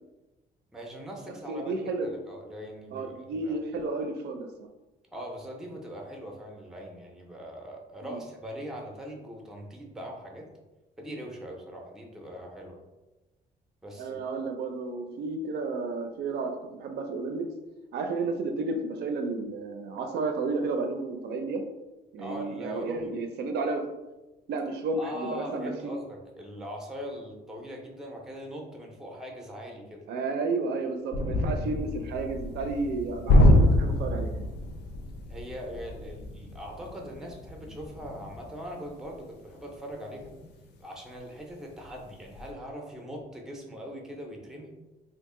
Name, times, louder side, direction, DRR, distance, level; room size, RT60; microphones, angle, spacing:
voice 1, 0.7-3.6 5.1-10.5 11.0-12.8 13.8-14.2 22.2-23.1 25.0-30.0 35.3-40.3 40.8-44.7, equal, 5° right, 0 dB, 0.4 m, -41 dB
voice 2, 1.5-2.1 2.9-4.5 8.0-8.2 14.0-16.5 16.8-17.5 17.9-21.6 22.1-23.8 24.5-25.9 30.1-34.5, right 3 dB, 70° right, 5 dB, 0.4 m, -32 dB
sound 1, 31.1-40.8 41.2-41.4 41.8-42.5, left 1 dB, 75° left, 0.5 m, -27 dB
2.7 x 2.4 x 3.6 m, 1.1 s
cardioid pair, 170°, 18 cm